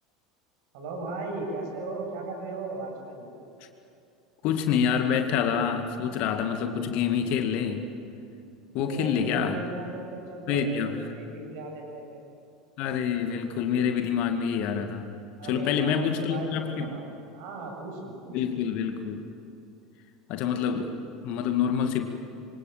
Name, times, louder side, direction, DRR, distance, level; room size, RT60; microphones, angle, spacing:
voice 1, 0.7-3.3 8.8-12.2 15.4-18.3, right 2 dB, 55° right, 1 dB, 7.7 m, -37 dB
voice 2, 4.4-7.9 8.7-9.6 10.5-11.0 12.8-15.1 15.5-17.0 18.3-19.3 20.3-22.1, left 7 dB, 50° left, 6 dB, 2.1 m, -27 dB
27.0 x 24.5 x 7.5 m, 2.6 s
figure-of-eight pair, 75°, 2 cm